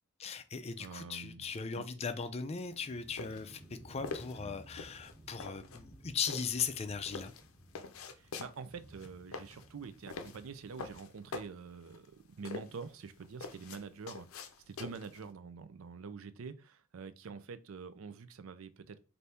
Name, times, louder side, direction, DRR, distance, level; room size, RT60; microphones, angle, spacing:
voice 1, 0.2-7.3, left 6 dB, 30° left, 0.4 m, -38 dB
voice 2, 0.8-1.5 1.8-1.9 8.2-19.0, right 5 dB, 75° right, 0.4 m, -46 dB
sound 1, 1.4-11.1, right 1 dB, 15° right, 1.1 m, -57 dB
sound 2, 2.6-15.3, left 4 dB, 80° left, 0.5 m, -46 dB
3.4 x 2.6 x 4.2 m
head